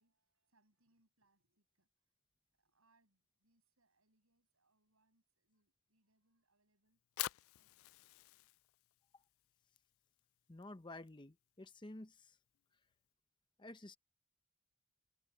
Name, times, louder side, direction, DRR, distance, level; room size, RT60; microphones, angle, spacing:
voice 1, 0.0-1.9 2.6-7.0 7.6-7.9, right 2 dB, 80° right, 6.8 m, -80 dB
Fire, 6.9-13.1, left 16 dB, 75° left, 0.3 m, -50 dB
voice 2, 10.5-12.4 13.6-14.0, left 2 dB, 20° left, 0.7 m, -52 dB
head